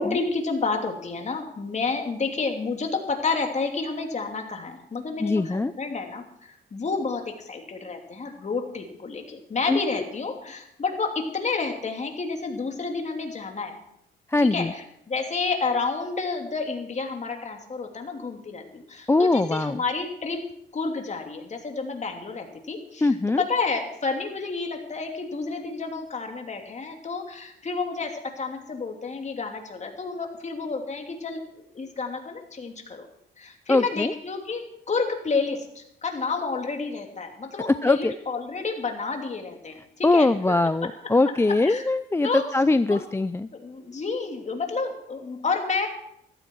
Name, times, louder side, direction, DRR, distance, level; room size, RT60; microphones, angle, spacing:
voice 1, 0.0-13.8 14.4-20.4 20.7-33.1 33.4-40.3 41.5-41.9 42.2-42.4 42.9-43.0 43.5-45.9, left 4 dB, 35° left, 3 dB, 2.9 m, -30 dB
voice 2, 5.2-5.7 9.7-9.8 14.3-14.7 19.1-19.8 23.0-23.4 33.7-34.1 37.8-38.1 40.0-43.5, left 2 dB, 15° left, 13 dB, 0.4 m, -22 dB
14.5 x 14.0 x 4.7 m, 0.75 s
cardioid pair, 90°, 20 cm